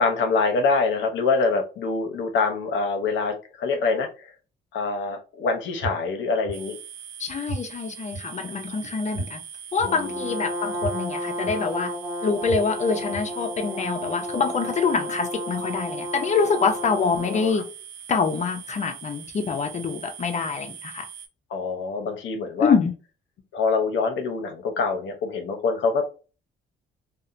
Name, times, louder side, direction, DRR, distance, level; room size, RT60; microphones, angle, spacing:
voice 1, 0.0-4.3 4.7-6.7 9.8-10.1 17.2-17.6 21.5-22.7 23.5-26.0, left 4 dB, 70° left, 0.7 m, -25 dB
sound 1, 5.8-5.9 6.4-6.5 7.5-7.6 8.1-8.2 9.1-9.2 9.8-9.9 10.8-10.9 11.4-11.5 12.5-12.6 13.1-13.2, right 2 dB, 85° right, 0.8 m, -31 dB
sound 2, 6.5-21.3, right 8 dB, 65° right, 0.5 m, -42 dB
voice 2, 7.2-9.4 9.7-11.9 12.2-17.7 18.1-21.0 22.6-22.9, left 5 dB, 35° left, 0.5 m, -25 dB
Brass instrument, 9.8-17.6, equal, 10° right, 1.1 m, -32 dB
2.7 x 2.1 x 2.4 m
cardioid pair, 90°, 20 cm